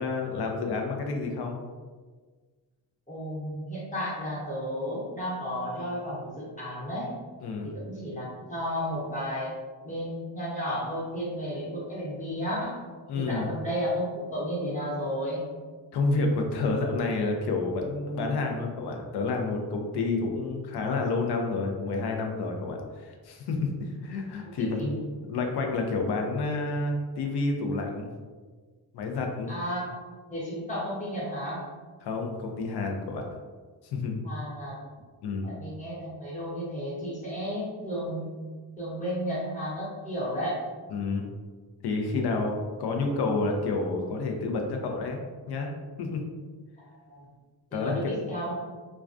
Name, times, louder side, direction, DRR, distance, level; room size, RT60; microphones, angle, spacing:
voice 1, 0.0-1.6 7.4-7.7 13.1-13.5 15.9-28.1 28.9-29.5 32.0-33.2 33.8-34.2 35.2-35.5 40.9-41.3 41.8-45.2 45.5-45.7 46.0-46.2 47.7-48.0, left 3 dB, 60° left, 2 dB, 0.5 m, -29 dB
voice 2, 3.1-7.1 7.6-9.5 9.8-12.8 13.1-15.4 24.4-25.0 29.5-30.0 30.3-31.6 34.2-34.8 35.4-38.3 38.8-40.6 47.1-47.2 47.7-48.7, equal, 15° left, -8 dB, 1.0 m, -33 dB
2.2 x 2.2 x 2.5 m, 1.4 s
cardioid pair, 100°, 44 cm